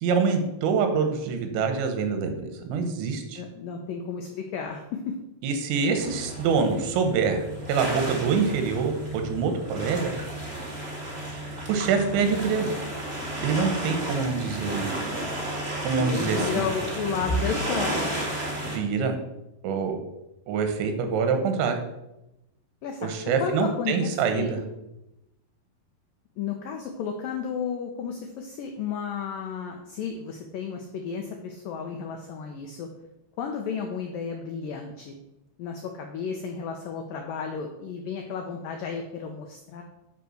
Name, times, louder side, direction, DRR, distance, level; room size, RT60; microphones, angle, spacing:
voice 1, 0.0-3.4 5.4-10.1 11.7-12.7 13.4-15.0 15.8-16.6 18.7-19.2 19.6-20.0 20.5-21.8 23.0-24.6, right 5 dB, 85° right, 6 dB, 3.5 m, -25 dB
voice 2, 3.4-5.2 16.0-18.1 22.8-23.1 23.4-24.5 26.4-32.9 33.4-35.1 35.6-39.8, left 5 dB, 85° left, 3 dB, 1.9 m, -32 dB
sound 1, 5.9-18.8, right 1 dB, 45° right, 0.8 m, -33 dB
9.9 x 4.7 x 6.4 m, 0.92 s
omnidirectional pair, 5.2 m